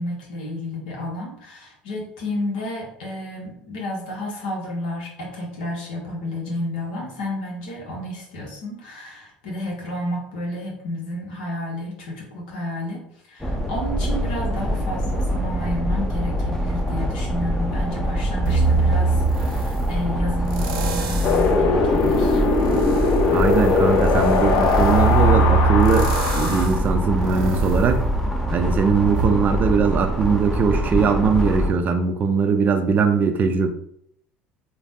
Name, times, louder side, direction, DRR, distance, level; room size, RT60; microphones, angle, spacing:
voice 1, 0.0-22.4, left 1 dB, 70° left, -1 dB, 1.0 m, -31 dB
sound 1, 13.4-31.7, equal, 5° left, 0.6 m, -24 dB
sound 2, 18.5-19.9 20.5-21.5 22.0-28.7 29.2-29.3, right 3 dB, 70° right, 0.7 m, -24 dB
Wind, 21.2-26.7, left 4 dB, 50° left, 0.6 m, -20 dB
voice 2, 23.3-26.1 26.3-28.0 28.5-33.7, right 5 dB, 35° right, 6 dB, 0.4 m, -20 dB
3.3 x 2.2 x 2.7 m, 0.69 s
hypercardioid pair, 70°, 5 cm